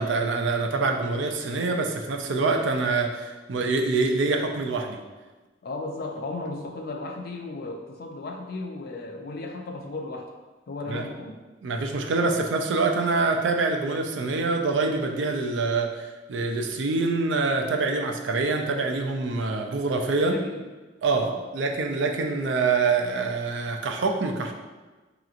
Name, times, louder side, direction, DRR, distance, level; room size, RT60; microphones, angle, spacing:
voice 1, 0.0-5.0 10.9-11.0 11.6-20.4 21.0-21.3 21.5-24.5, right 3 dB, 80° right, 3 dB, 0.5 m, -25 dB
voice 2, 5.6-10.3 10.7-11.4 20.2-20.7 21.1-21.4, left 2 dB, 55° left, 3 dB, 0.5 m, -35 dB
4.9 x 2.9 x 2.4 m, 1.2 s
head